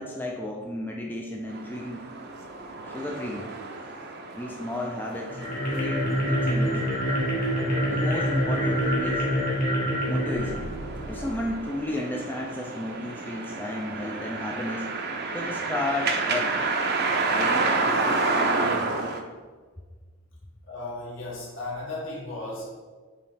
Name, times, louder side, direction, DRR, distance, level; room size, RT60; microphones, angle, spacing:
voice 1, 0.0-2.0 2.9-3.5 4.3-5.4 5.7-6.8 7.8-9.3 10.1-10.7 11.1-14.9 15.3-16.6 17.3-18.2, left 1 dB, 10° left, -1 dB, 0.4 m, -33 dB
sound 1, 1.5-19.2, right 3 dB, 50° right, 0.6 m, -30 dB
sound 2, 5.3-11.5, equal, 40° left, 1.9 m, -26 dB
voice 2, 20.7-22.7, left 2 dB, 60° left, -4 dB, 1.8 m, -35 dB
7.0 x 3.1 x 4.9 m, 1.4 s
head